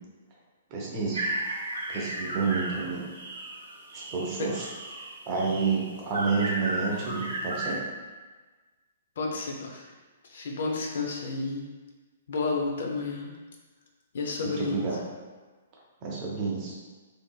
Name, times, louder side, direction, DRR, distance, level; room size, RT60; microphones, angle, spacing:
voice 1, 0.7-1.2 1.9-3.1 3.9-4.7 5.3-7.8 14.4-15.0 16.0-16.7, right 4 dB, 35° right, -4 dB, 0.6 m, -29 dB
sound 1, 1.1-7.8, right 2 dB, 70° right, 0.8 m, -35 dB
voice 2, 9.2-9.8 10.3-11.7 12.3-13.3 14.1-14.8, left 3 dB, 60° left, 0 dB, 0.4 m, -31 dB
2.6 x 2.6 x 2.3 m, 1.3 s
figure-of-eight pair, 115°, 0 cm